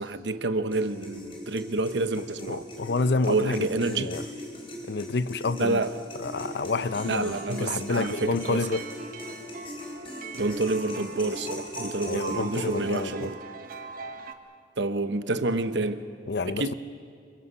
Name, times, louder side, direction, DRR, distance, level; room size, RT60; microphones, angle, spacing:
voice 1, 0.0-2.7 3.2-4.1 5.6-6.0 7.0-8.6 10.3-13.4 14.8-16.0 16.5-16.7, right 2 dB, 70° right, 10 dB, 1.0 m, -28 dB
sound 1, 0.7-13.3, left 1 dB, 30° left, 3.9 m, -41 dB
voice 2, 2.5-4.2 4.9-5.8 6.2-8.8 12.0-13.3 16.3-16.7, left 3 dB, 60° left, 15 dB, 0.6 m, -29 dB
sound 2, 6.3-14.3, right 4 dB, 50° right, 1.2 m, -42 dB
27.5 x 23.0 x 5.6 m, 2.3 s
head